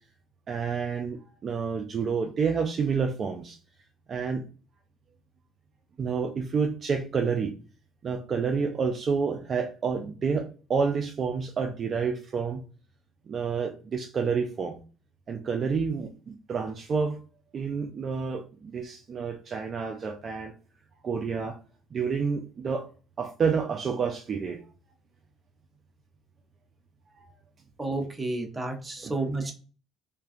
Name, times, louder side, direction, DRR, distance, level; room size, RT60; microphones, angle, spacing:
voice 1, 0.5-3.6 4.1-4.4 6.0-7.5 8.0-12.6 13.3-14.8 15.3-17.2 17.5-20.5 21.0-21.6 21.9-22.9 23.2-24.6 27.2-27.3 29.0-29.1, right 5 dB, 45° right, 4 dB, 0.3 m, -29 dB
voice 2, 27.8-29.5, right 2 dB, 20° right, 2 dB, 0.7 m, -31 dB
2.5 x 2.3 x 2.4 m, 0.36 s
supercardioid pair, 80°, 0 cm